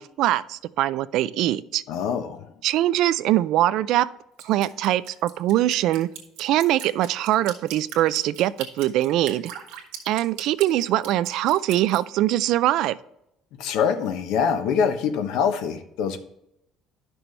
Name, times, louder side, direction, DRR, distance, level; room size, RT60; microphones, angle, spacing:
voice 1, 0.0-1.8 2.6-4.1 4.4-6.1 6.4-9.5 10.1-13.0, right 14 dB, 70° right, 17 dB, 0.4 m, -22 dB
voice 2, 1.9-2.5 13.6-16.2, left 7 dB, 75° left, 8 dB, 1.0 m, -24 dB
Drip, 4.4-12.0, right 9 dB, 90° right, 1.3 m, -39 dB
11.0 x 6.0 x 3.3 m, 0.80 s
cardioid pair, 135°, 0 cm